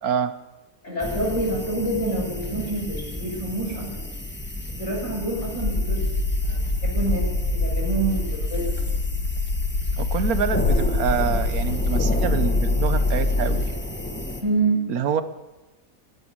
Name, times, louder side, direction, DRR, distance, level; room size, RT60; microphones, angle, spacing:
voice 1, 0.0-0.3 10.0-13.6 14.9-15.2, right 7 dB, 70° right, 12 dB, 1.4 m, -26 dB
voice 2, 0.8-4.1 4.7-6.1 6.4-8.9 14.4-14.9, right 2 dB, 50° left, -4 dB, 7.1 m, -27 dB
sound 1, 1.0-14.4, left 1 dB, 5° left, 1.3 m, -33 dB
sound 2, 5.6-13.7, left 2 dB, 75° left, 2.5 m, -24 dB
15.0 x 10.0 x 8.8 m, 1.1 s
omnidirectional pair, 1.6 m